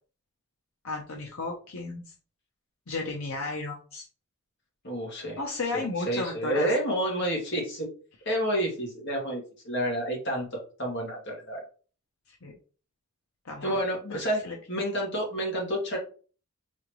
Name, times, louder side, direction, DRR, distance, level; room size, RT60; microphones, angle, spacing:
voice 1, 0.8-2.1 2.9-4.0 5.4-6.7 12.3-12.5 13.4-13.8 14.1-14.6, left 3 dB, 80° left, 0 dB, 0.8 m, -34 dB
voice 2, 4.8-5.4 5.7-7.9 8.3-11.7 13.6-14.4 14.7-16.0, right 1 dB, 55° left, -1 dB, 2.0 m, -29 dB
4.3 x 3.9 x 3.0 m, 0.38 s
head